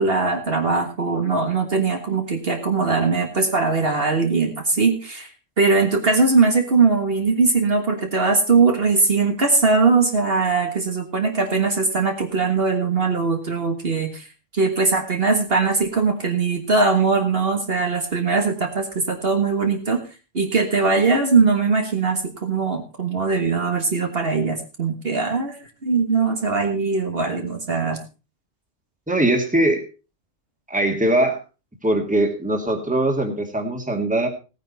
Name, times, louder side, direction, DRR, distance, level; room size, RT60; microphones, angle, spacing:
voice 1, 0.0-5.3 5.6-14.3 14.5-20.0 20.3-25.6 25.8-28.0, right 4 dB, 50° right, 4 dB, 1.8 m, -20 dB
voice 2, 29.1-29.9 30.7-31.4 31.8-34.3, right 1 dB, 5° right, 4 dB, 2.0 m, -21 dB
16.5 x 9.3 x 4.1 m, 0.32 s
omnidirectional pair, 1.3 m